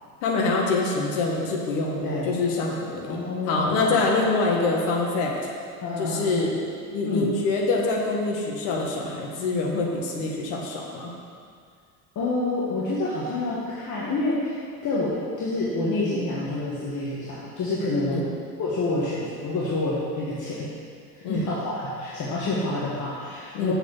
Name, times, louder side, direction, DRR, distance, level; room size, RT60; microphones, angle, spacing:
voice 1, 0.2-5.3 6.0-6.7 6.9-11.1 18.1-18.2 21.2-21.4 23.5-23.7, left 3 dB, 55° left, -1 dB, 1.8 m, -25 dB
voice 2, 2.0-2.3 3.1-3.9 4.3-4.4 4.6-4.7 5.8-6.3 7.1-7.3 12.1-18.3 18.6-20.7 21.1-23.7, left 2 dB, 35° left, -7 dB, 1.7 m, -28 dB
7.2 x 6.9 x 6.2 m, 2.2 s
figure-of-eight pair, 65°, 50 cm